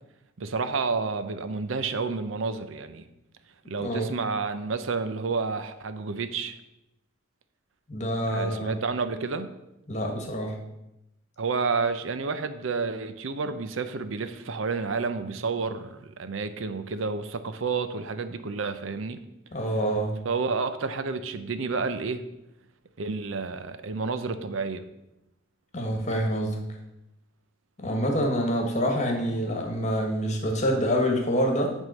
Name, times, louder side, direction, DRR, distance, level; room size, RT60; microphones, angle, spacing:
voice 1, 0.4-3.0 3.7-6.6 8.3-9.5 11.4-19.2 20.2-22.2 23.0-24.8, right 4 dB, 70° right, 10 dB, 0.6 m, -30 dB
voice 2, 3.8-4.1 7.9-8.7 9.9-10.6 19.5-20.1 25.7-26.6 27.8-31.7, equal, 35° left, 2 dB, 1.4 m, -26 dB
9.3 x 3.7 x 6.2 m, 0.90 s
head